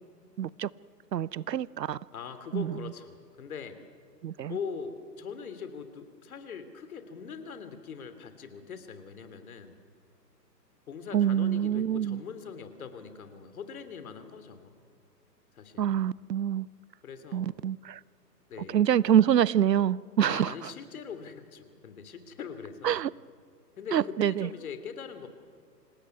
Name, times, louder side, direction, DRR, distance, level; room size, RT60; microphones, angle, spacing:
voice 1, 0.4-0.7 1.1-2.0 2.5-2.7 4.2-4.5 11.1-12.2 15.8-16.7 17.3-18.0 18.7-20.5 22.8-23.1 23.9-24.5, right 10 dB, 75° right, 0.7 m, -26 dB
voice 2, 2.1-3.8 4.5-9.8 10.9-14.7 15.6-15.9 17.0-17.5 18.5-18.9 20.2-23.0 23.8-25.3, left 6 dB, 60° left, 3.1 m, -42 dB
27.0 x 17.0 x 9.7 m
hypercardioid pair, 140°, 49 cm